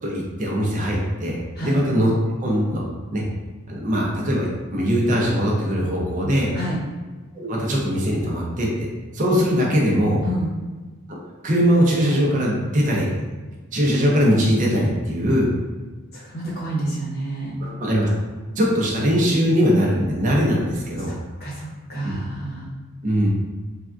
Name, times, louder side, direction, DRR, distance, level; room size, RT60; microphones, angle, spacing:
voice 1, 0.0-2.1 2.4-2.8 3.1-3.2 3.7-6.5 7.3-8.7 9.1-10.2 11.4-13.1 13.7-15.5 17.6-18.1 18.6-21.1 22.0-22.1 23.0-23.3, equal, 35° right, -3 dB, 0.5 m, -21 dB
voice 2, 16.1-17.6 21.1-22.7, right 1 dB, 45° left, -6 dB, 0.8 m, -29 dB
3.4 x 2.3 x 2.4 m, 1.3 s
head